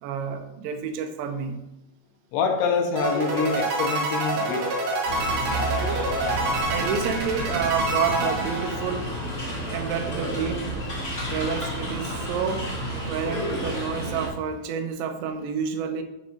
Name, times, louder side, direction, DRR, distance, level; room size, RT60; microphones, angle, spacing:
voice 1, 0.0-1.6 6.7-9.2 9.7-10.8 11.3-12.7 13.1-16.0, right 7 dB, 80° right, 7 dB, 2.9 m, -29 dB
voice 2, 2.3-4.7, left 5 dB, 85° left, 4 dB, 3.2 m, -25 dB
sound 1, 3.0-9.3, right 1 dB, 60° right, 2.9 m, -27 dB
sound 2, 5.0-14.3, right 1 dB, 50° left, 0.7 m, -31 dB
12.0 x 5.8 x 2.5 m, 0.96 s
omnidirectional pair, 5.2 m